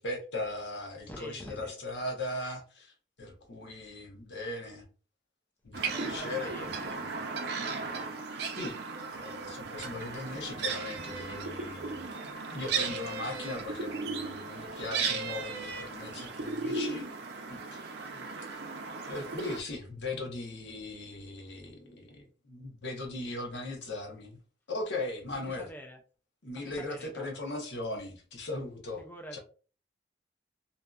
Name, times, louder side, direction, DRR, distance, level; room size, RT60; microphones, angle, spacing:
voice 1, 0.0-2.9 3.2-4.8 5.6-7.0 8.6-8.7 9.1-17.1 17.5-17.8 19.1-24.4 24.7-25.7 26.4-29.0 29.3-29.4, left 2 dB, 75° left, 2 dB, 0.8 m, -38 dB
voice 2, 1.1-1.7 5.7-7.0 18.0-18.3 25.3-26.0 26.6-27.4 29.0-29.4, equal, 10° left, 3 dB, 0.3 m, -47 dB
sound 1, 5.7-19.6, right 4 dB, 65° right, 0.5 m, -36 dB
2.6 x 2.3 x 2.2 m, 0.37 s
head